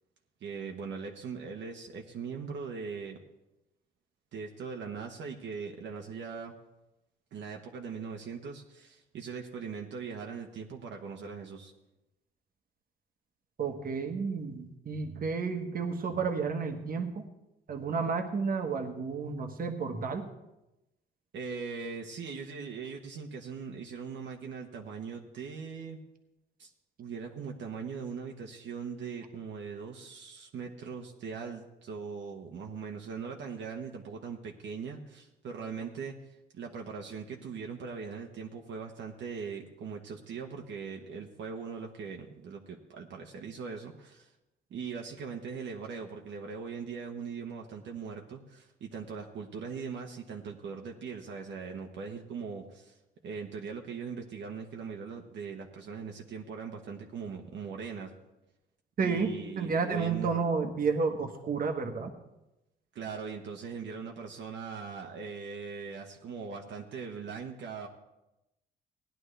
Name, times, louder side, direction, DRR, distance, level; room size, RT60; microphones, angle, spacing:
voice 1, 0.4-3.2 4.3-6.5 7.3-11.7 21.3-26.0 26.6-26.7 27.0-36.1 36.5-44.3 44.7-52.9 53.2-58.1 59.0-60.4 62.9-67.9, right 5 dB, 65° right, 1 dB, 1.2 m, -40 dB
voice 2, 13.6-17.2 17.7-20.3 59.0-59.3 59.6-62.1, right 5 dB, 45° right, 4 dB, 1.4 m, -31 dB
17.0 x 10.5 x 3.4 m, 0.94 s
cardioid pair, 90°, 20 cm